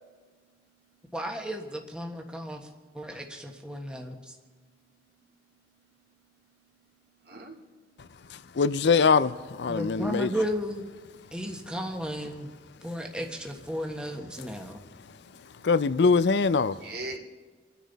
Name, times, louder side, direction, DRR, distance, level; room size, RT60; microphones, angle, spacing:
voice 1, 1.1-2.6 2.9-4.3 9.7-10.8 11.3-12.5 12.8-14.8, equal, 5° right, 1.3 m, -34 dB
voice 2, 7.2-8.4 15.1-17.2, right 2 dB, 55° right, 2.4 m, -44 dB
voice 3, 8.6-10.3 15.6-16.8, left 4 dB, 70° left, 0.5 m, -22 dB
29.5 x 10.5 x 4.1 m
head